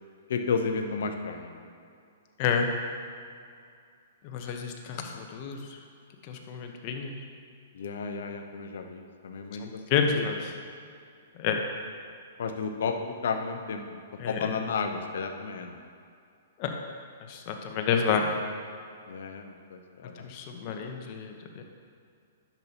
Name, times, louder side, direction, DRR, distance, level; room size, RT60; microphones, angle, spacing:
voice 1, 0.3-1.7 4.9-5.2 7.7-10.2 12.4-14.0 14.3-15.8 19.1-20.3, left 5 dB, 70° left, 6 dB, 0.8 m, -33 dB
voice 2, 4.2-5.6 6.2-7.2 9.6-10.5 11.4-11.6 14.2-14.4 16.6-16.7 17.3-18.4 20.2-21.6, left 6 dB, 45° left, 3 dB, 1.0 m, -29 dB
10.5 x 7.1 x 3.0 m, 2.4 s
hypercardioid pair, 120°, 0 cm